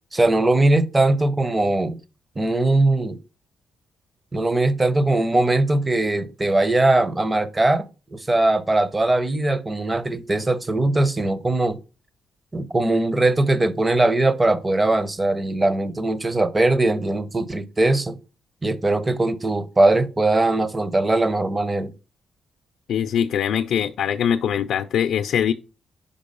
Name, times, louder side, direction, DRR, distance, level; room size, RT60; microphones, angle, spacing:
voice 1, 0.1-2.0 2.4-3.2 4.3-7.9 8.1-11.8 12.5-18.2 18.6-21.9, right 2 dB, 20° right, 0.7 m, -20 dB
voice 2, 22.9-25.5, left 8 dB, 75° left, 0.4 m, -22 dB
5.3 x 4.6 x 5.3 m
cardioid pair, 110°, 0 cm